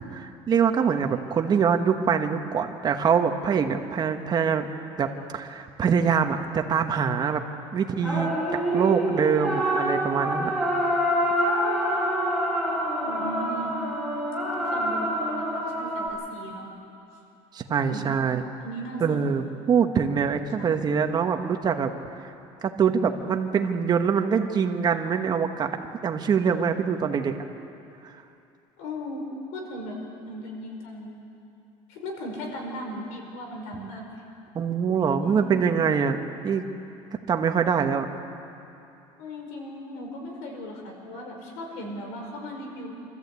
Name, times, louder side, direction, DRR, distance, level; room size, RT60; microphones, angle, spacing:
voice 1, 0.0-4.7 5.0-7.4 7.7-10.5 17.5-18.4 19.0-21.9 22.6-25.8 26.0-27.3 34.5-36.2 36.4-36.6 37.3-38.1, right 6 dB, 35° right, 6 dB, 1.4 m, -24 dB
sound 1, 8.0-16.1, equal, 5° left, 6.1 m, -26 dB
voice 2, 13.0-13.8 14.6-16.7 17.7-18.0 18.6-19.3 20.6-20.8 28.8-29.3 29.5-30.0 30.2-31.1 31.9-34.0 35.2-35.6 39.2-42.9, equal, 90° left, 1 dB, 5.0 m, -37 dB
25.5 x 14.0 x 8.4 m, 2.8 s
cardioid pair, 135°, 12 cm